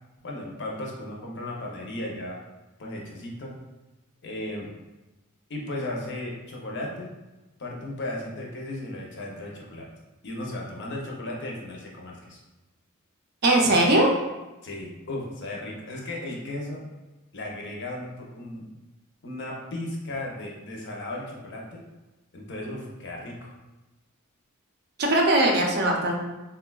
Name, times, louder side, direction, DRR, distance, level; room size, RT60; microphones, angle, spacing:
voice 1, 0.2-2.4 2.8-3.5 4.2-4.7 5.5-7.1 7.6-9.9 10.2-12.4 14.6-16.8 17.3-18.7 19.2-21.8 22.3-23.5, left 1 dB, 55° left, -2 dB, 0.6 m, -35 dB
voice 2, 13.4-14.1 25.0-26.2, right 1 dB, 50° right, 0 dB, 0.5 m, -20 dB
3.7 x 2.2 x 2.2 m, 1.1 s
head